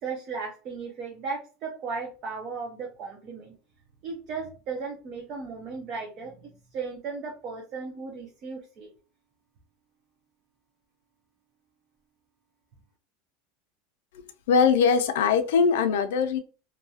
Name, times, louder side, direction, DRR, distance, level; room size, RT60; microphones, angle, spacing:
voice 1, 0.0-3.5 4.0-8.9, right 4 dB, 40° right, 0 dB, 0.7 m, -36 dB
voice 2, 14.5-16.4, left 6 dB, 85° left, 8 dB, 0.5 m, -21 dB
2.7 x 2.3 x 2.7 m, 0.35 s
supercardioid pair, 145°, 0 cm